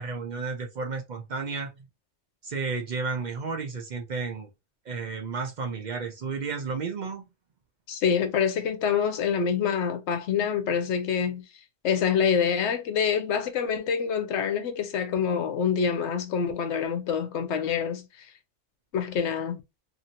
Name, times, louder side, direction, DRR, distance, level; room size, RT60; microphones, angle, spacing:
voice 1, 0.0-1.7 2.4-4.5 4.9-7.2, right 4 dB, 55° right, 0.5 m, -32 dB
voice 2, 7.9-11.4 11.8-18.1 18.9-19.6, left 7 dB, 80° left, 0.9 m, -26 dB
2.7 x 2.6 x 2.7 m
omnidirectional pair, 1.2 m